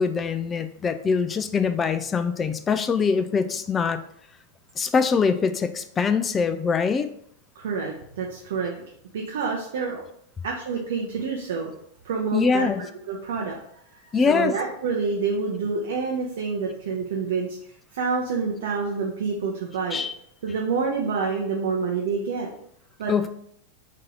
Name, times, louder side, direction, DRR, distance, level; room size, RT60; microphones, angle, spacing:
voice 1, 0.0-4.0 4.8-7.1 12.3-12.8 14.1-14.5 19.9-20.1 23.1-23.3, left 5 dB, 20° left, 10 dB, 0.3 m, -23 dB
voice 2, 7.6-8.7 9.1-10.0 10.4-11.7 12.0-13.6 14.0-17.6 17.9-20.0 20.4-22.5 23.0-23.3, right 5 dB, 60° right, -1 dB, 0.6 m, -27 dB
3.8 x 2.7 x 3.8 m, 0.69 s
figure-of-eight pair, 90°, 0 cm